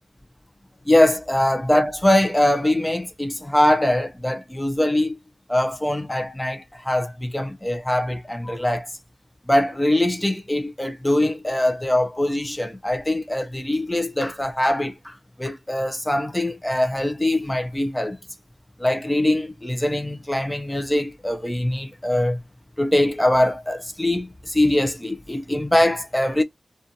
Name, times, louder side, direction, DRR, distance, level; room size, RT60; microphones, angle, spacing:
voice 1, 0.9-5.2 5.5-8.9 9.5-18.2 18.8-22.4 22.8-26.4, left 1 dB, 10° left, 0.3 m, -22 dB
2.5 x 2.2 x 2.5 m
wide cardioid pair, 120°, 0 cm